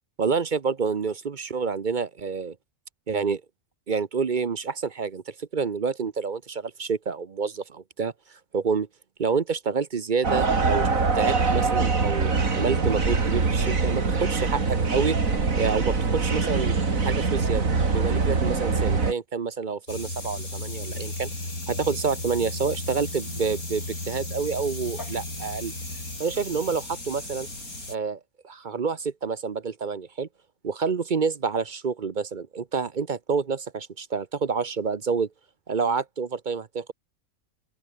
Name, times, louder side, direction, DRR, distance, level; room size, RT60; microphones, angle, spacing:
voice 1, 0.2-2.5 3.1-3.4 3.9-8.1 8.5-8.9 9.2-10.9 11.1-15.2 15.5-21.3 21.7-25.7 26.2-27.5 27.9-30.3 30.6-35.3 35.7-36.9, right 5 dB, 40° right, 0.9 m, -28 dB
sound 1, 10.2-19.1, right 4 dB, 70° right, 3.0 m, -23 dB
sound 2, 19.9-28.0, left 2 dB, 85° left, 8.4 m, -35 dB
open air
omnidirectional pair, 1.5 m